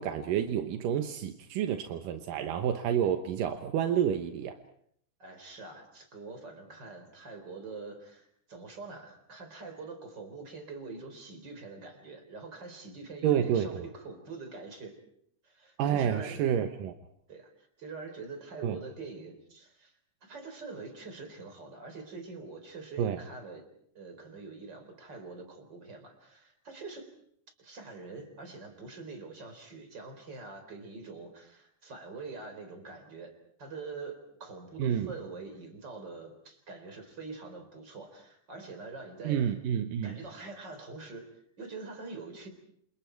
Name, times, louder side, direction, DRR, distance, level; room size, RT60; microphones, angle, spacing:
voice 1, 0.0-4.5 13.2-13.8 15.8-16.9 18.6-18.8 23.0-23.2 34.8-35.1 39.2-40.2, right 9 dB, 85° right, 6 dB, 2.8 m, -29 dB
voice 2, 5.2-15.0 15.4-16.4 17.3-23.6 23.9-27.1 27.6-39.5 40.0-42.5, right 3 dB, 30° right, 6 dB, 4.6 m, -45 dB
28.5 x 28.0 x 4.6 m, 0.69 s
omnidirectional pair, 3.8 m